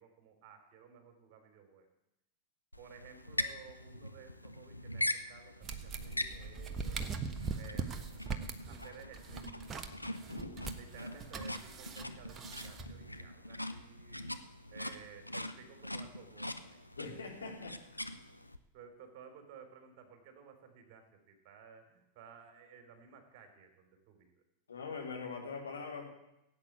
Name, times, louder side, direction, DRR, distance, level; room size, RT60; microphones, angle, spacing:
voice 1, 0.0-1.9 2.8-7.1 7.5-8.3 8.7-9.7 10.7-14.3 14.7-16.8 18.7-24.4, right 7 dB, 45° right, 6 dB, 3.5 m, -55 dB
sound 1, 2.7-18.6, left 1 dB, 85° left, 0.8 m, -42 dB
sound 2, 5.6-13.2, right 5 dB, 25° right, 1.2 m, -42 dB
voice 2, 10.3-10.6 17.0-18.0 24.7-26.1, left 4 dB, 70° left, 0 dB, 3.6 m, -43 dB
16.5 x 8.7 x 8.4 m, 0.88 s
figure-of-eight pair, 90°, 0 cm